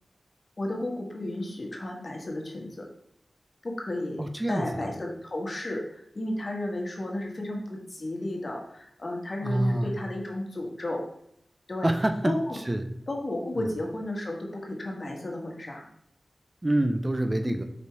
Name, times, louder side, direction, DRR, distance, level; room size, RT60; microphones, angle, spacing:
voice 1, 0.6-2.9 3.6-11.0 11.7-11.9 12.2-12.6 13.1-15.9, left 1 dB, 55° left, 0 dB, 1.6 m, -33 dB
voice 2, 4.2-4.9 9.4-10.0 11.8-12.3 12.7-12.9 13.6-13.7 16.6-17.6, right 1 dB, 30° right, 6 dB, 0.6 m, -26 dB
5.2 x 4.1 x 4.7 m, 0.72 s
cardioid pair, 45°, 0 cm